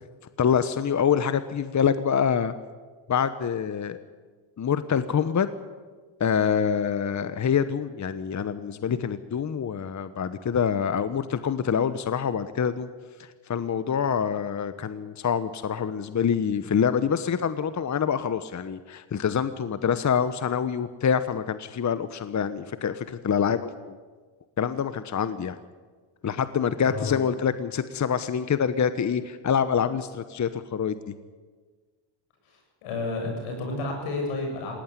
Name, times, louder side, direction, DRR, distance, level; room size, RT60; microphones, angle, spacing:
voice 1, 0.4-2.5 3.1-4.0 4.6-5.5 6.2-12.9 13.5-24.0 24.6-25.6 26.2-31.1, left 7 dB, 35° left, 12 dB, 1.1 m, -26 dB
voice 2, 26.9-27.2 32.5-34.8, left 2 dB, 85° left, 2 dB, 7.5 m, -31 dB
19.0 x 18.0 x 9.9 m, 1.5 s
supercardioid pair, 75°, 50 cm